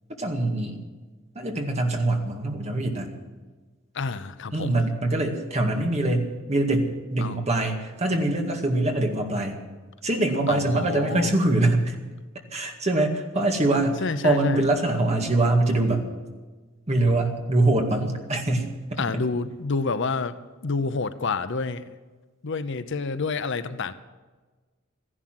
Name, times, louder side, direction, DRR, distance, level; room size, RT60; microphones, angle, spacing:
voice 1, 0.2-0.8 1.4-3.1 4.5-9.6 10.0-11.9 12.5-16.0 16.9-19.0, right 2 dB, 35° right, 3 dB, 2.0 m, -24 dB
voice 2, 3.9-4.7 7.2-7.4 10.5-11.3 14.0-14.7 19.0-20.4 20.6-21.8 22.4-23.9, left 4 dB, 60° left, 12 dB, 0.7 m, -28 dB
14.5 x 11.0 x 7.7 m, 1.3 s
head